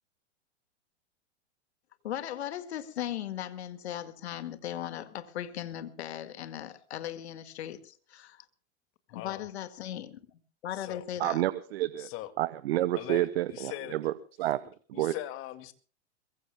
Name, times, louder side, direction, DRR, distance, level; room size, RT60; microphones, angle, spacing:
voice 1, 2.0-8.4 9.1-10.2 10.6-11.4, left 11 dB, 65° left, 1.9 m, -38 dB
voice 2, 9.1-9.5 10.7-11.0 12.0-12.3 13.0-14.0 14.9-15.7, left 15 dB, 35° left, 2.1 m, -40 dB
voice 3, 11.2-12.1 12.4-15.2, right 14 dB, 60° right, 1.0 m, -30 dB
23.0 x 22.5 x 2.2 m
hypercardioid pair, 105°, 35 cm